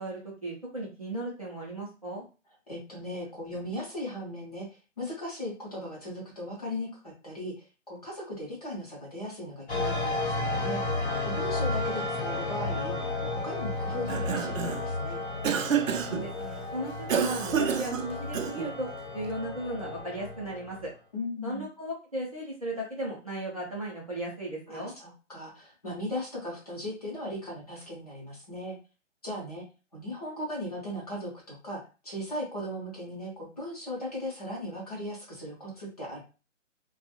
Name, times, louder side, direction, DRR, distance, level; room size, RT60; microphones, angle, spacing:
voice 1, 0.0-2.2 16.1-18.9 19.1-20.9 21.4-24.9, right 1 dB, 30° right, -5 dB, 0.6 m, -36 dB
voice 2, 2.7-4.7 5.0-10.8 11.2-15.2 21.1-21.7 24.7-28.8 29.2-29.6 29.9-36.2, left 1 dB, 30° left, -4 dB, 0.8 m, -38 dB
sound 1, 9.7-20.9, left 2 dB, 55° left, 1.0 m, -33 dB
Cough, 13.9-14.9 15.4-16.3 17.1-18.8, right 8 dB, 80° right, 0.5 m, -29 dB
2.4 x 2.3 x 2.8 m, 0.33 s
hypercardioid pair, 170°, 39 cm